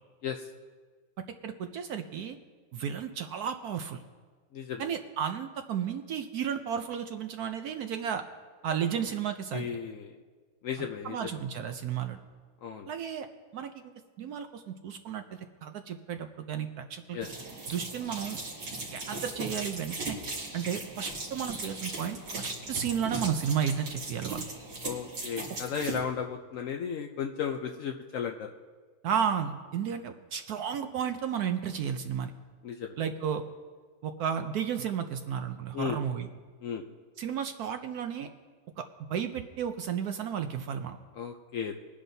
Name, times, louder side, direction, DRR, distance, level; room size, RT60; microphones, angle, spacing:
voice 1, 1.2-2.4 2.7-4.0 4.8-8.2 8.6-9.7 10.8-12.2 12.9-13.3 13.5-13.9 14.2-15.2 15.6-17.2 17.7-18.4 18.9-20.2 20.5-24.4 29.0-32.3 33.0-33.4 34.0-36.3 37.2-38.3 38.8-38.9 39.1-41.0, right 8 dB, 70° right, 7 dB, 0.9 m, -33 dB
voice 2, 4.5-4.8 9.5-10.2 10.6-11.4 12.6-12.9 17.1-17.3 24.8-28.5 32.6-33.0 35.7-36.0 36.6-36.8 41.1-41.8, left 7 dB, 80° left, 3 dB, 0.7 m, -35 dB
sound 1, 17.2-26.0, right 3 dB, 90° right, 3.2 m, -38 dB
21.5 x 10.0 x 2.7 m, 1.5 s
omnidirectional pair, 2.1 m